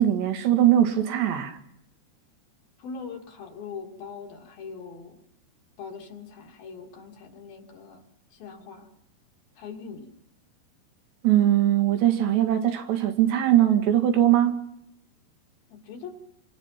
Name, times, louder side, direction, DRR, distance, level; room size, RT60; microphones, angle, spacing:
voice 1, 0.0-1.6 11.2-14.6, right 12 dB, 85° right, 4.3 m, -21 dB
voice 2, 2.8-5.2 5.8-8.0 8.3-8.9 9.6-10.1 15.7-16.3, left 5 dB, 60° left, 4.3 m, -41 dB
29.5 x 25.0 x 5.9 m
omnidirectional pair, 4.9 m